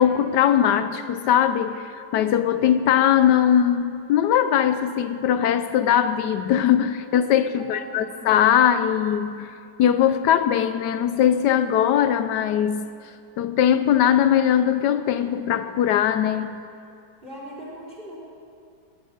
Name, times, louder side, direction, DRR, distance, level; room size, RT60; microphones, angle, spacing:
voice 1, 0.0-12.9 13.4-16.6, left 9 dB, 80° left, 11 dB, 1.2 m, -20 dB
voice 2, 7.6-8.3 17.2-18.2, right 1 dB, 30° right, -6 dB, 4.0 m, -39 dB
19.5 x 8.8 x 6.6 m, 2.4 s
omnidirectional pair, 1.9 m